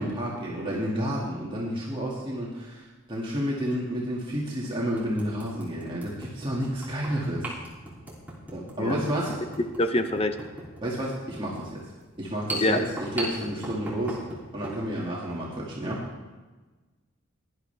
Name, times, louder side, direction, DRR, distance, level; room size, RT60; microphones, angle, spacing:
voice 1, 0.0-7.5 8.5-9.4 10.8-11.8 12.2-14.2 14.5-16.1, equal, 25° right, -5 dB, 2.1 m, -30 dB
sound 1, 2.1-2.2 3.7-3.8 4.3-4.4 5.0-14.8, right 1 dB, 10° right, 2.8 m, -39 dB
voice 2, 9.8-10.3 12.6-12.8, left 1 dB, 30° left, 8 dB, 0.8 m, -24 dB
18.0 x 11.0 x 3.4 m, 1.3 s
head